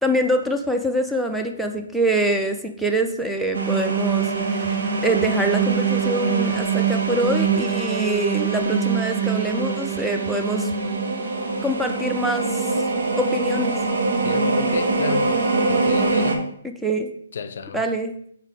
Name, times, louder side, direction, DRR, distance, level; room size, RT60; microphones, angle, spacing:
voice 1, 0.0-10.7 11.6-12.7 13.2-13.8 16.6-17.1 17.7-18.1, right 1 dB, 5° right, 0.5 m, -25 dB
sound 1, 3.5-16.3, right 4 dB, 65° right, 1.0 m, -23 dB
voice 2, 14.2-15.3 15.7-16.5 17.3-17.8, left 5 dB, 60° left, 0.5 m, -31 dB
5.6 x 4.8 x 3.5 m
figure-of-eight pair, 130°, 0 cm